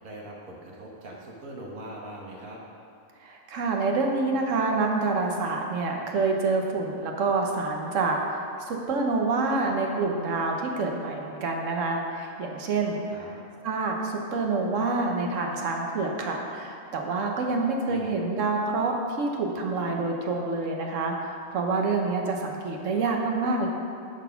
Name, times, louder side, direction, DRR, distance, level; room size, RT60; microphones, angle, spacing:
voice 1, 0.0-2.6 13.1-13.3 17.8-18.1, right 1 dB, 80° right, -2 dB, 1.7 m, -41 dB
voice 2, 3.2-13.3 13.6-23.7, right 3 dB, 65° right, 2 dB, 1.3 m, -27 dB
11.0 x 4.2 x 5.7 m, 2.4 s
omnidirectional pair, 1.4 m